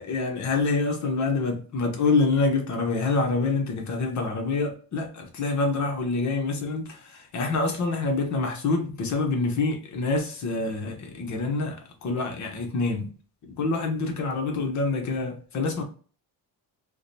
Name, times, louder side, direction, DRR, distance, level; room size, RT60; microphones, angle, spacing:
voice 1, 0.0-13.1 13.6-15.8, left 3 dB, 50° left, 0.9 m, -26 dB
4.8 x 2.2 x 2.7 m
cardioid pair, 140°, 38 cm